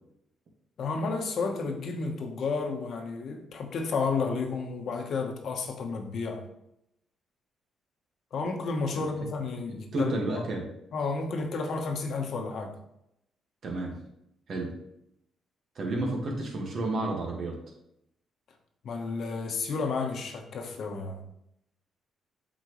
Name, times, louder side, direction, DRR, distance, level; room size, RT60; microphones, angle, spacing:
voice 1, 0.8-6.4 8.3-10.5 10.9-12.8 18.8-21.2, left 4 dB, 65° left, 1.2 m, -32 dB
voice 2, 9.7-10.7 13.6-14.0 14.5-14.8 15.8-17.6, right 2 dB, 55° right, 1.8 m, -31 dB
8.0 x 4.4 x 3.2 m
cardioid pair, 90°, 0 cm